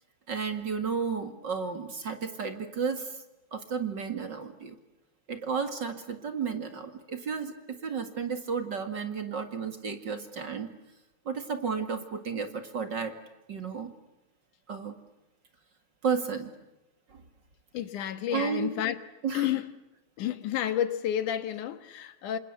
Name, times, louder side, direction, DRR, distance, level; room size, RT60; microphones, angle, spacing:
voice 1, 0.3-3.2 3.5-4.7 5.3-10.7 11.3-13.1 13.5-13.9 14.7-14.9 16.0-16.5 17.1-17.2 18.3-18.8 19.2-19.6, right 6 dB, 40° right, 2.3 m, -33 dB
voice 2, 17.7-19.0 19.3-19.6 20.2-22.4, left 11 dB, 85° left, 3.0 m, -30 dB
28.0 x 26.5 x 8.0 m
omnidirectional pair, 3.5 m